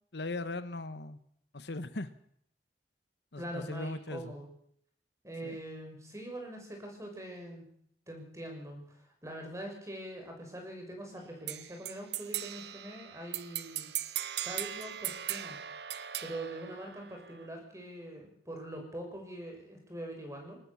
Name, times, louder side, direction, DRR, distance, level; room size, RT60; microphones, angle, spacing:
voice 1, 0.1-1.2 1.5-2.1 3.3-4.3 5.4-5.6, left 2 dB, 65° left, 12 dB, 1.2 m, -38 dB
voice 2, 3.4-4.5 5.2-7.7 8.1-13.9 14.4-15.6 16.2-20.6, right 1 dB, 15° right, 2 dB, 6.3 m, -43 dB
sound 1, 11.5-17.5, right 12 dB, 60° right, 0.9 m, -39 dB
21.5 x 18.5 x 7.2 m, 0.69 s
head